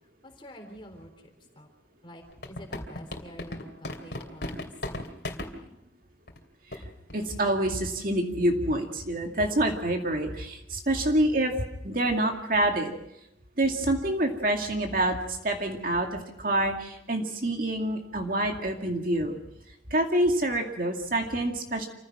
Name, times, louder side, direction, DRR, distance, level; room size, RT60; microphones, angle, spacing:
voice 1, 0.2-1.7 2.0-5.8, equal, 25° left, 4 dB, 3.7 m, -48 dB
sound 1, 2.3-5.5 6.3-6.4 6.7-6.8 7.1-7.3 7.7-7.9, left 1 dB, 60° left, 2.8 m, -35 dB
voice 2, 7.1-11.5 11.8-12.9 13.6-19.4 19.9-21.9, right 1 dB, 50° right, 3 dB, 2.3 m, -27 dB
27.5 x 15.5 x 6.2 m, 0.86 s
head